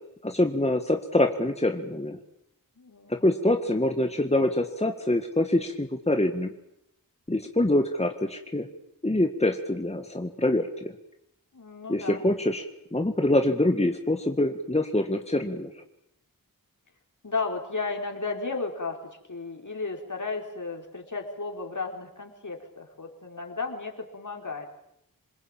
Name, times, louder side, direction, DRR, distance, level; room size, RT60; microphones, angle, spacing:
voice 1, 0.2-2.2 3.1-6.5 7.3-8.7 9.0-10.9 11.9-12.6 12.9-15.7, left 1 dB, 20° left, 5 dB, 1.8 m, -25 dB
voice 2, 2.8-3.3 11.5-12.3 17.2-24.7, left 4 dB, 60° left, 2 dB, 4.6 m, -34 dB
27.0 x 21.0 x 9.0 m, 0.81 s
wide cardioid pair, 70°, 35 cm